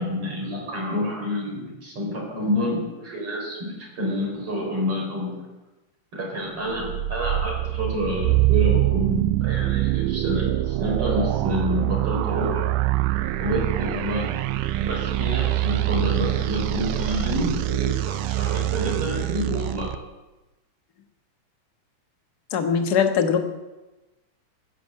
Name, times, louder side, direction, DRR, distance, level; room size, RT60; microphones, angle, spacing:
voice 1, 0.0-5.3 6.1-12.6 13.4-14.3 14.8-19.9, equal, 45° right, -2 dB, 5.3 m, -28 dB
sound 1, 6.7-20.0, right 16 dB, 80° right, 2.2 m, -24 dB
voice 2, 22.5-23.5, left 7 dB, 45° left, 6 dB, 1.4 m, -21 dB
17.0 x 10.5 x 7.5 m, 1.1 s
omnidirectional pair, 3.6 m